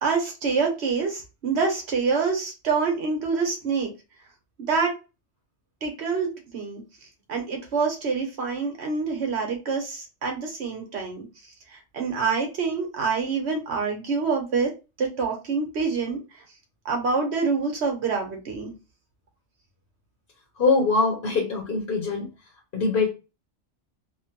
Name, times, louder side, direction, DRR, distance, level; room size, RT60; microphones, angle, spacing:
voice 1, 0.0-3.9 4.6-4.9 5.8-6.8 7.3-11.3 11.7-14.7 15.0-16.2 16.8-18.7, right 5 dB, 65° right, 2 dB, 1.1 m, -26 dB
voice 2, 20.6-22.3 22.7-23.1, left 4 dB, 50° left, -1 dB, 1.0 m, -23 dB
3.0 x 2.1 x 2.9 m, 0.29 s
omnidirectional pair, 1.2 m